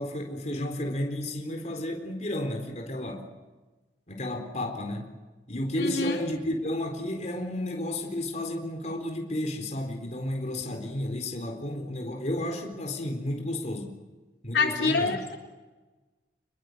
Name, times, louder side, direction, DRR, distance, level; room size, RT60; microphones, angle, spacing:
voice 1, 0.0-3.2 4.1-5.1 5.5-13.9 14.4-15.2, left 1 dB, 40° left, 3 dB, 4.1 m, -32 dB
voice 2, 5.8-6.2 14.5-15.4, left 4 dB, 75° left, 1 dB, 4.1 m, -26 dB
28.5 x 22.0 x 8.0 m, 1.2 s
head